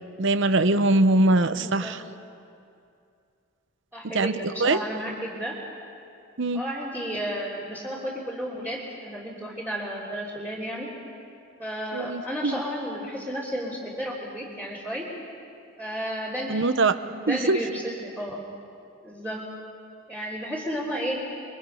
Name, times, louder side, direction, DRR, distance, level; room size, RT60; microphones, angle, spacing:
voice 1, 0.2-2.0 4.1-4.3 4.6-4.8 6.4-6.6 11.9-12.5 16.5-16.9 17.3-17.6, right 2 dB, 55° right, 12 dB, 0.8 m, -22 dB
voice 2, 1.4-2.0 3.9-5.6 6.5-10.9 11.6-15.1 15.8-18.4 19.0-19.4 20.1-21.2, equal, 10° right, -8 dB, 3.2 m, -33 dB
29.0 x 23.0 x 5.6 m, 2.5 s
head